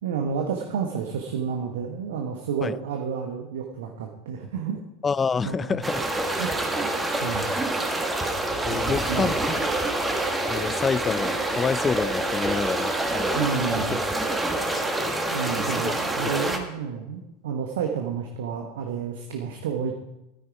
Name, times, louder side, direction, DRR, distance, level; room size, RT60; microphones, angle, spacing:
voice 1, 0.0-4.8 5.4-5.8 6.4-6.5 7.2-7.6 8.7-9.3 13.3-14.0 15.3-19.9, right 6 dB, 65° right, 3 dB, 1.1 m, -30 dB
voice 2, 5.0-6.0 8.6-9.4 10.5-13.4 14.6-15.2 15.6-15.9, left 5 dB, 20° left, 21 dB, 0.3 m, -28 dB
sound 1, 5.8-16.6, right 2 dB, 10° right, 1.6 m, -26 dB
13.0 x 9.4 x 4.8 m, 0.96 s
figure-of-eight pair, 80°, 0 cm